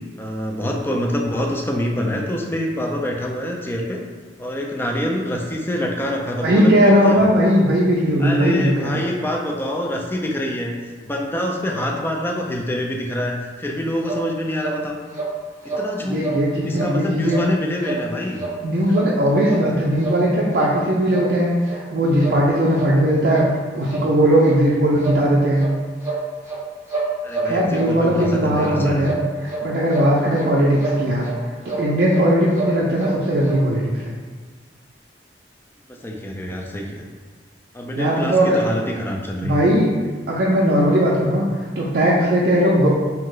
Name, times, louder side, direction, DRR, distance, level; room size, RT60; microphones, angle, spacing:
voice 1, 0.2-4.0 4.4-7.3 8.2-10.7 11.0-15.0 15.6-16.2 16.6-18.4 18.9-19.0 27.2-29.1 35.9-37.0 37.7-39.7, left 1 dB, 15° left, 0 dB, 0.3 m, -26 dB
voice 2, 6.4-9.0 16.0-17.4 18.6-23.4 23.7-25.7 27.4-29.1 29.4-31.3 31.6-34.2 37.9-38.6 39.4-39.9 40.3-41.5 41.8-42.9, equal, 60° right, -5 dB, 0.4 m, -18 dB
sound 1, 14.0-14.2 14.6-14.8 15.1-15.3 15.7-15.9 16.2-16.4 16.7-16.9 17.3-17.4 17.8-18.0 18.4-18.5 18.9-19.1 19.4-19.6 20.0-20.2 20.5-20.7 21.1-21.3 21.7-21.8 22.2-22.4 22.8-22.9 23.3-23.5 23.9-24.0 24.4-24.6 25.0-25.2 25.6-25.7 26.0-26.6 26.9-27.9 28.2-28.3 28.6-28.7 29.0-29.6 29.9-30.5 30.8-31.0 31.2-31.4 31.7-31.9 32.1-32.2 32.5-33.1 33.4-33.6, right 3 dB, 15° right, 1.0 m, -28 dB
2.8 x 2.1 x 3.8 m, 1.4 s
head